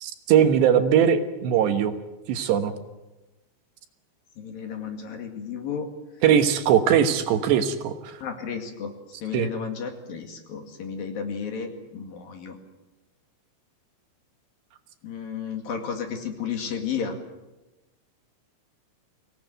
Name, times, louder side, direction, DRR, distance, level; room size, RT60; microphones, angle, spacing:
voice 1, 0.0-1.9 2.3-2.7 6.2-8.2 9.3-9.5, right 8 dB, 70° right, 8 dB, 3.3 m, -20 dB
voice 2, 4.4-5.9 8.2-8.9 9.2-12.6 15.0-17.1, left 7 dB, 55° left, 4 dB, 3.6 m, -33 dB
24.0 x 18.0 x 9.3 m, 1.1 s
omnidirectional pair, 5.3 m